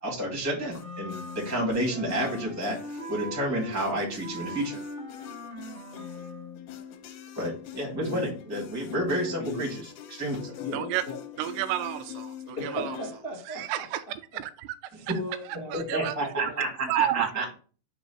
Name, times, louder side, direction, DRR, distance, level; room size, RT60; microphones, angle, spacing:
voice 1, 0.0-4.8 7.3-9.8 10.2-10.5 15.7-17.4, right 1 dB, 10° right, -2 dB, 0.7 m, -30 dB
sound 1, 0.7-13.2, left 10 dB, 85° left, 2.7 m, -43 dB
Wind instrument woodwind instrument, 0.7-6.6, left 1 dB, 30° left, 0.9 m, -40 dB
voice 2, 8.0-8.3 9.4-9.8 10.6-11.2 12.5-13.8 15.1-15.9 16.4-16.7, left 1 dB, 70° left, -3 dB, 0.5 m, -37 dB
voice 3, 10.7-11.0 11.4-13.0 13.5-14.0 14.3-15.1 15.5-16.5 16.9-17.4, right 12 dB, 85° right, 10 dB, 2.6 m, -31 dB
6.1 x 3.0 x 5.7 m, 0.39 s
omnidirectional pair, 4.7 m